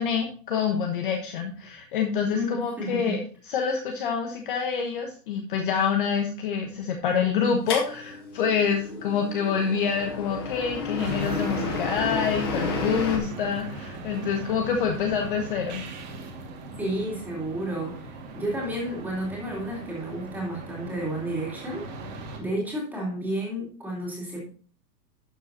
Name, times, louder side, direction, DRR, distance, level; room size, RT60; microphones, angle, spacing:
voice 1, 0.0-3.2 3.5-15.9, left 6 dB, 30° left, 3 dB, 1.1 m, -27 dB
voice 2, 2.3-3.2 16.8-24.5, equal, 5° right, -3 dB, 2.6 m, -31 dB
sound 1, 7.7-13.2, left 4 dB, 15° left, 0.7 m, -32 dB
sound 2, 11.0-22.4, right 2 dB, 25° right, 1.8 m, -38 dB
12.0 x 7.0 x 2.7 m, 0.42 s
hypercardioid pair, 175°, 49 cm